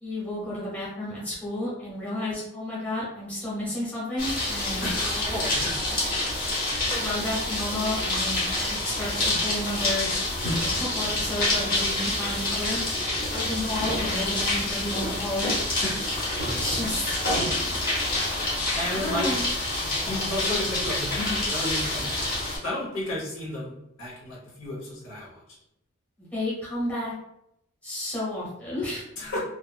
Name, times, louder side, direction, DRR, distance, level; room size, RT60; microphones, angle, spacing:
voice 1, 0.0-5.3 6.9-10.1 10.6-12.8 13.3-15.5 16.5-17.2 18.7-19.4 20.0-20.3 26.2-27.1 27.8-29.0, left 1 dB, 5° left, -8 dB, 0.9 m, -32 dB
sound 1, 4.2-22.6, left 2 dB, 40° left, 1.0 m, -27 dB
voice 2, 4.7-6.3 15.8-16.1 17.3-17.5 18.8-19.3 19.8-22.3 22.6-25.4 29.2-29.4, left 1 dB, 75° left, -5 dB, 1.0 m, -33 dB
2.8 x 2.5 x 2.3 m, 0.79 s
head